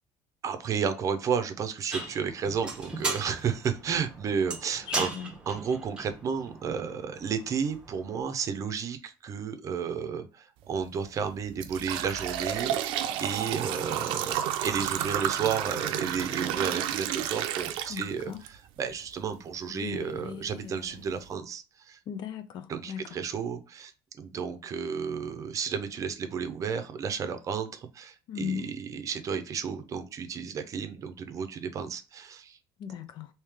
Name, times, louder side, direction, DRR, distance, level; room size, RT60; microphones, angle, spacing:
voice 1, 0.4-5.1 5.5-22.0 22.7-23.9 24.2-32.6, right 6 dB, 40° right, 0.6 m, -32 dB
sound 1, 1.9-8.2, right 3 dB, 10° right, 0.9 m, -38 dB
voice 2, 4.9-5.3 17.9-18.4 19.7-20.9 22.1-23.0 28.3-28.7 32.8-33.3, left 8 dB, 60° left, 0.5 m, -37 dB
sound 2, 10.7-10.8 11.3-18.5 18.9-19.0 19.9-20.0 20.5-20.6 21.0-21.3, right 10 dB, 80° right, 0.5 m, -31 dB
3.2 x 2.8 x 3.5 m
cardioid pair, 125°, 9 cm